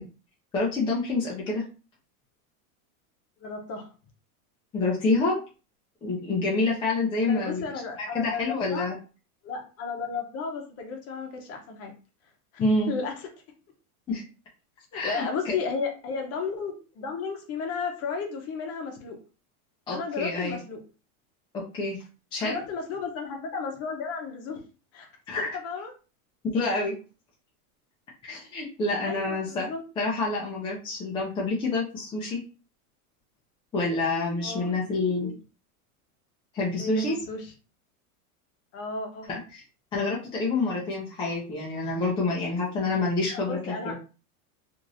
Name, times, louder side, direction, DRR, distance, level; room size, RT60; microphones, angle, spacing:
voice 1, 0.5-1.6 4.7-5.4 6.0-7.6 8.0-9.0 12.6-12.9 14.1-14.2 14.9-15.5 19.9-20.6 21.5-22.0 22.3-22.6 25.3-25.6 26.5-26.9 28.2-29.7 30.0-32.4 33.7-35.3 36.5-37.2 39.3-39.6 39.9-43.6 43.8-43.9, left 3 dB, 10° left, -4 dB, 0.4 m, -27 dB
voice 2, 3.4-3.9 7.2-8.9 9.4-11.9 12.5-13.3 14.9-19.2 19.9-20.8 22.4-24.6 24.9-25.1 25.4-25.9 29.0-29.8 34.4-35.0 35.2-35.3 36.8-37.5 38.7-39.3 43.3-43.9, left 5 dB, 35° left, 3 dB, 0.9 m, -34 dB
3.0 x 2.6 x 2.6 m, 0.33 s
supercardioid pair, 145°, 44 cm